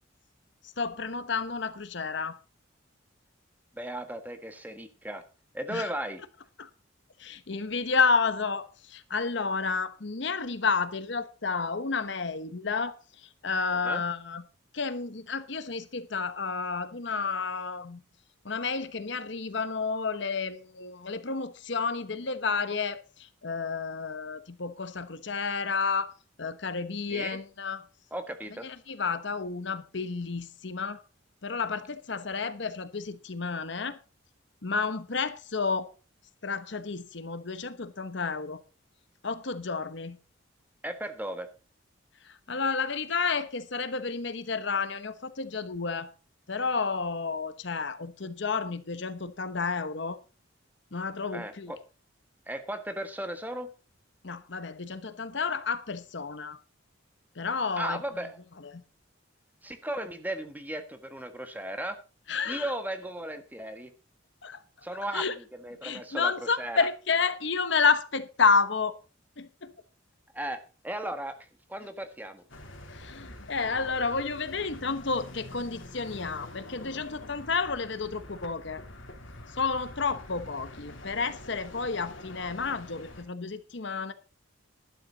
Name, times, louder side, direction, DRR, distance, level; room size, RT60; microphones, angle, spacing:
voice 1, 0.8-2.4 5.7-5.9 6.6-6.7 7.2-14.4 14.7-18.0 18.4-26.1 26.4-27.9 28.6-31.0 31.4-34.0 34.6-35.9 36.4-38.6 39.2-40.2 42.2-46.1 46.5-50.2 50.9-51.7 54.2-56.6 57.4-58.0 58.6-58.8 62.3-62.7 64.4-64.6 65.1-65.3 65.8-68.9 69.4-69.7 72.9-78.8 79.5-84.1, left 4 dB, 60° left, 1.0 m, -30 dB
voice 2, 3.7-5.2 5.5-6.2 13.8-14.0 27.1-27.4 28.1-28.7 40.8-41.5 51.3-51.8 52.5-53.7 57.8-58.4 59.6-62.0 62.4-63.9 64.8-65.3 65.6-66.9 70.3-70.6 70.8-71.4 71.7-72.4, right 1 dB, 10° right, 1.5 m, -36 dB
sound 1, 72.5-83.2, left 1 dB, 75° left, 3.3 m, -46 dB
12.0 x 12.0 x 4.0 m
head